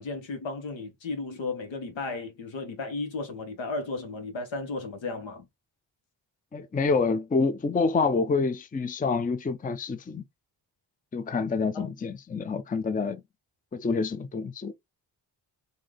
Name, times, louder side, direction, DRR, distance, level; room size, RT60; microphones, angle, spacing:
voice 1, 0.0-5.5 11.7-11.9, left 3 dB, 80° left, 1.3 m, -34 dB
voice 2, 6.5-10.2 11.1-13.2 13.7-14.7, left 4 dB, 20° left, 0.5 m, -27 dB
3.2 x 2.7 x 3.8 m
cardioid pair, 75°, 45 cm